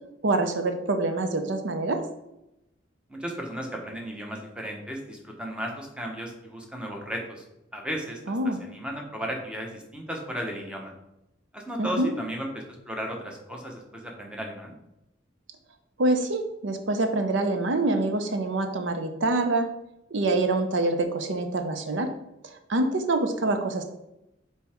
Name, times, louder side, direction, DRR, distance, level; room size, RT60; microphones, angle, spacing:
voice 1, 0.2-2.0 8.3-8.6 11.8-12.1 16.0-19.7 20.1-22.1 22.4-23.8, right 2 dB, 75° right, 7 dB, 0.7 m, -25 dB
voice 2, 3.1-7.5 7.7-8.2 8.4-10.9 11.5-14.8, equal, 5° right, 0 dB, 1.0 m, -35 dB
5.4 x 4.5 x 4.4 m, 0.89 s
head